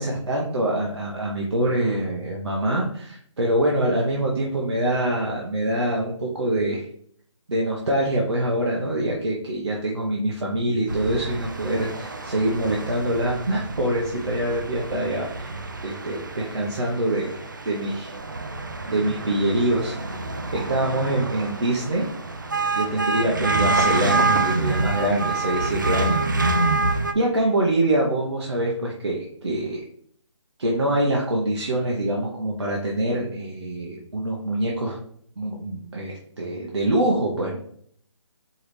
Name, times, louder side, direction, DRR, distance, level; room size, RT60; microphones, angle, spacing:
voice 1, 0.0-6.9 7.5-15.5 15.8-17.3 17.6-18.1 18.8-20.0 20.5-22.1 22.7-26.2 27.1-29.8 30.6-35.0 35.4-37.6, right 1 dB, 60° right, -2 dB, 0.9 m, -25 dB
sound 1, 10.9-27.1, right 3 dB, 40° right, 0.4 m, -27 dB
4.6 x 3.2 x 3.1 m, 0.63 s
hypercardioid pair, 180°, 16 cm